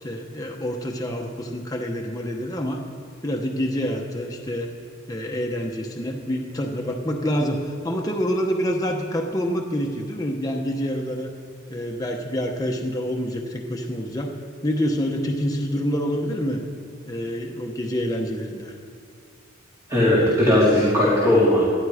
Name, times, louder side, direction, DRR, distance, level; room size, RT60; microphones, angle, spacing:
voice 1, 0.0-2.8 3.2-4.7 5.1-11.3 11.7-14.3 14.6-16.6 17.1-18.8, equal, 20° left, 0 dB, 1.0 m, -27 dB
voice 2, 19.9-21.6, left 1 dB, 15° right, -8 dB, 3.4 m, -18 dB
19.0 x 12.0 x 5.0 m, 2.3 s
head